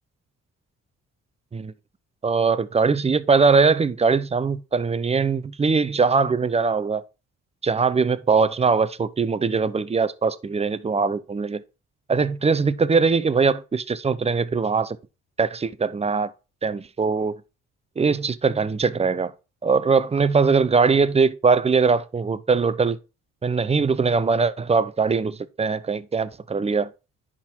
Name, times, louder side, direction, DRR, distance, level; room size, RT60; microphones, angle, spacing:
voice 1, 2.2-7.0 7.6-11.6 12.1-15.0 15.4-16.3 16.6-17.4 18.0-19.3 19.6-23.0 23.4-26.9, right 5 dB, 20° right, 0.6 m, -21 dB
10.5 x 3.8 x 4.4 m
cardioid pair, 90°, 30 cm